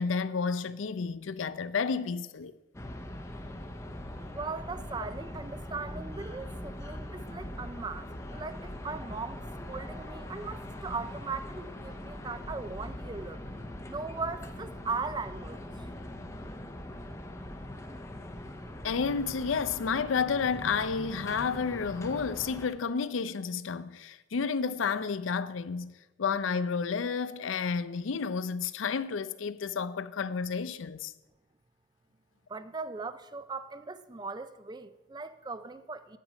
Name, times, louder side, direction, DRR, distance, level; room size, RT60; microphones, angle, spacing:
voice 1, 0.0-2.5 18.8-25.9 26.2-31.1, left 5 dB, 85° left, 0.5 m, -31 dB
sound 1, 2.7-22.7, left 1 dB, 15° left, 0.7 m, -42 dB
voice 2, 4.3-9.4 9.7-13.4 13.9-15.9 32.5-36.2, right 4 dB, 20° right, 0.4 m, -39 dB
9.1 x 8.8 x 5.0 m
head